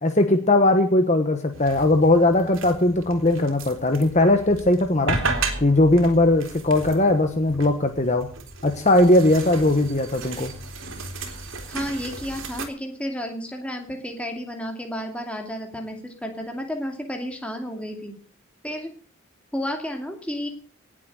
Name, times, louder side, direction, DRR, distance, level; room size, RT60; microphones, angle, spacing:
voice 1, 0.0-5.2 5.6-8.3 8.6-10.5, left 2 dB, 35° left, 6 dB, 1.2 m, -19 dB
sound 1, 1.5-12.7, right 3 dB, 70° right, 3.0 m, -34 dB
voice 2, 11.7-18.1 18.6-18.9 19.5-20.5, equal, 5° left, 3 dB, 2.5 m, -32 dB
18.5 x 7.6 x 6.6 m, 0.42 s
head